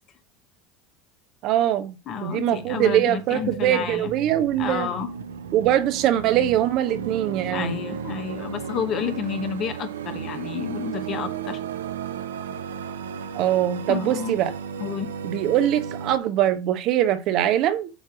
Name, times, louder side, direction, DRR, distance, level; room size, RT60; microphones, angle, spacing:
voice 1, 1.4-2.0 2.2-4.9 5.5-7.7 13.3-14.5 15.2-17.9, right 12 dB, 60° right, 1.0 m, -22 dB
voice 2, 2.1-4.1 4.6-5.1 7.5-11.6 13.9-14.4 14.8-15.1, left 7 dB, 50° left, 1.3 m, -30 dB
sound 1, 2.1-16.2, right 7 dB, 90° right, 0.6 m, -35 dB
8.0 x 2.9 x 6.1 m
hypercardioid pair, 80°, 0 cm